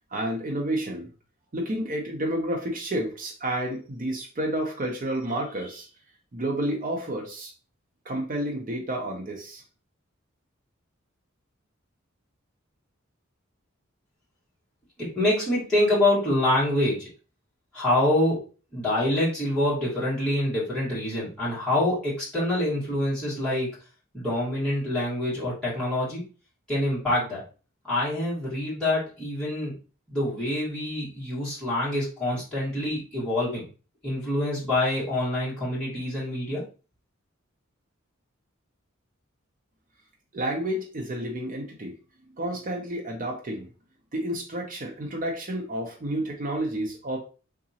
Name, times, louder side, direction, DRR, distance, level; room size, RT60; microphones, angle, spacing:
voice 1, 0.1-1.1 1.5-5.9 6.3-7.5 8.0-9.6 40.3-41.9 42.4-43.7 44.1-47.2, right 1 dB, 40° right, 0.6 m, -30 dB
voice 2, 15.0-17.1 17.7-18.4 18.7-23.7 24.1-26.2 26.7-27.4 27.9-29.7 30.1-33.7 34.0-36.6, left 1 dB, 5° left, 1.7 m, -26 dB
3.6 x 2.9 x 2.7 m
head